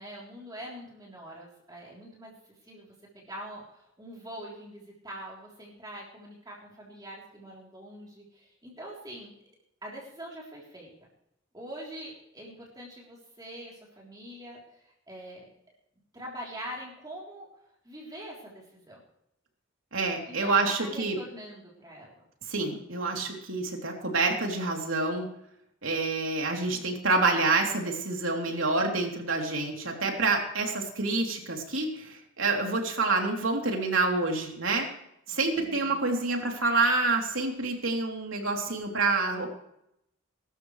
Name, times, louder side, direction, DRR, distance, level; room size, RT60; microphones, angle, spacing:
voice 1, 0.0-9.3 9.8-10.9 11.5-15.5 16.1-17.5 17.8-19.0 20.2-22.2 35.6-36.1, equal, 20° right, -4 dB, 3.6 m, -44 dB
voice 2, 19.9-21.2 22.5-25.3 25.8-34.9 35.3-39.5, right 3 dB, 80° right, 1 dB, 3.3 m, -27 dB
22.0 x 12.5 x 3.3 m, 0.77 s
head